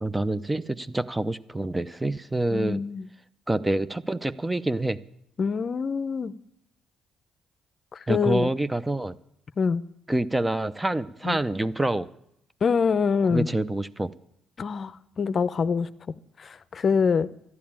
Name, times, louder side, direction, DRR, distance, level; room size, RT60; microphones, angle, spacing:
voice 1, 0.0-2.8 3.5-5.0 8.1-9.2 10.1-12.1 13.3-14.1, right 1 dB, 15° right, 0.6 m, -27 dB
voice 2, 2.5-3.1 5.4-6.3 7.9-8.5 9.6-9.8 11.2-11.4 12.6-13.5 14.6-15.9 16.4-17.3, left 5 dB, 45° left, 0.6 m, -25 dB
12.5 x 11.0 x 8.8 m
supercardioid pair, 75°, 0 cm